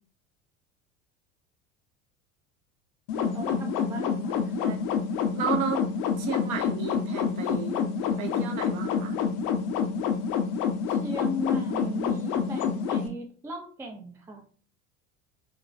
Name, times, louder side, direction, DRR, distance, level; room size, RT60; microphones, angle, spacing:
sound 1, 3.1-13.1, left 6 dB, 55° left, 0.6 m, -28 dB
voice 1, 3.1-4.5 10.9-14.4, left 1 dB, 5° right, 2 dB, 0.4 m, -36 dB
voice 2, 4.6-4.9 5.3-5.8 6.1-7.9 8.2-9.2, right 6 dB, 50° right, 3 dB, 0.8 m, -33 dB
3.1 x 2.2 x 2.5 m, 0.40 s
hypercardioid pair, 70°, 39 cm